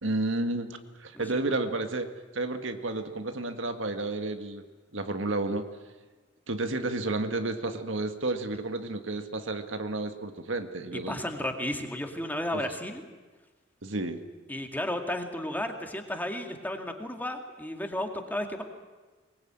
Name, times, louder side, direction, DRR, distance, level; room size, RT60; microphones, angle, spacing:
voice 1, 0.0-2.1 2.3-4.6 4.9-5.7 6.5-11.2 13.8-14.2, right 2 dB, 85° right, 7 dB, 1.9 m, -31 dB
voice 2, 11.1-13.0 14.5-18.6, left 1 dB, 10° left, 4 dB, 2.2 m, -33 dB
23.0 x 20.5 x 8.9 m, 1.3 s
head